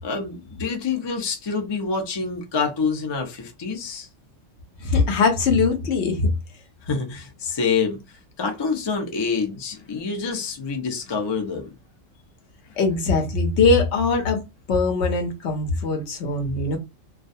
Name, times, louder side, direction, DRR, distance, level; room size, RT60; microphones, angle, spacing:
voice 1, 0.0-4.1 6.8-11.7, left 5 dB, 40° left, 0.3 m, -27 dB
voice 2, 4.8-6.3 12.8-14.4 14.7-16.8, left 3 dB, 65° left, 0.9 m, -21 dB
2.3 x 2.2 x 2.6 m
omnidirectional pair, 1.4 m